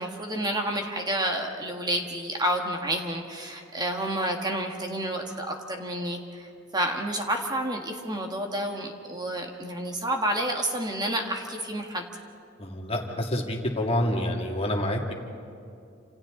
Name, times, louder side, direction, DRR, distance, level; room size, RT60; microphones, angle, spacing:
voice 1, 0.0-12.0, right 1 dB, 20° right, 2 dB, 1.7 m, -30 dB
voice 2, 12.6-15.1, left 1 dB, 30° left, 1 dB, 2.3 m, -27 dB
29.0 x 27.0 x 3.9 m, 2.5 s
head